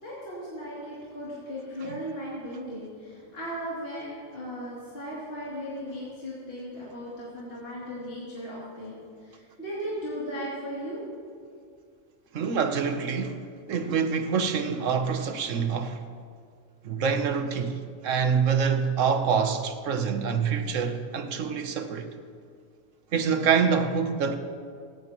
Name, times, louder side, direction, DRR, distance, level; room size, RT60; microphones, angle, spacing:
voice 1, 0.0-11.0, equal, 50° left, 3.2 m, -37 dB
voice 2, 12.3-13.4 13.7-16.0 16.8-17.8 18.0-22.1 23.1-24.4, right 6 dB, 75° right, 1.2 m, -26 dB
18.0 x 16.0 x 3.0 m
omnidirectional pair, 1.3 m